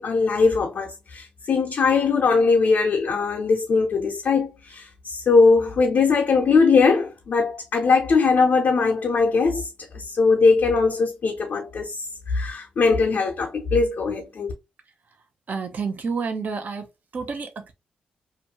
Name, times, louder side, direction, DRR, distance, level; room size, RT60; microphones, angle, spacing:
voice 1, 0.0-14.5, left 4 dB, 60° left, 0.6 m, -20 dB
voice 2, 15.5-16.8 17.1-17.7, right 5 dB, 55° right, 0.7 m, -29 dB
2.5 x 2.2 x 2.8 m
supercardioid pair, 45°, 3 cm